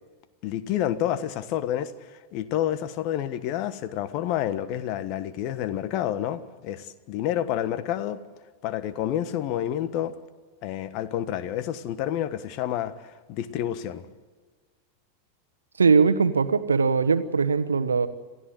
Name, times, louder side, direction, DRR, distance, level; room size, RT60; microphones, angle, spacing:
voice 1, 0.4-8.2 8.6-10.2 10.6-14.1, left 11 dB, 40° left, 14 dB, 1.4 m, -29 dB
voice 2, 15.8-18.1, right 5 dB, 75° right, 11 dB, 1.2 m, -21 dB
27.0 x 15.5 x 7.9 m, 1.4 s
figure-of-eight pair, 90°, 0 cm